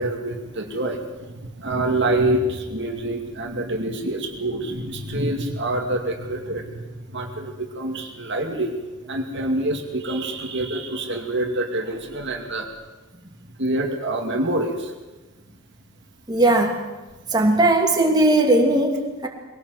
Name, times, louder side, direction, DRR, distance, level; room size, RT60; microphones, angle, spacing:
voice 1, 0.0-6.8 7.1-8.8 9.1-12.7 13.6-14.9, right 1 dB, 55° right, 3 dB, 2.4 m, -26 dB
voice 2, 16.3-16.8 17.3-19.3, right 1 dB, 20° right, 1 dB, 2.7 m, -18 dB
22.5 x 18.0 x 8.0 m, 1.2 s
head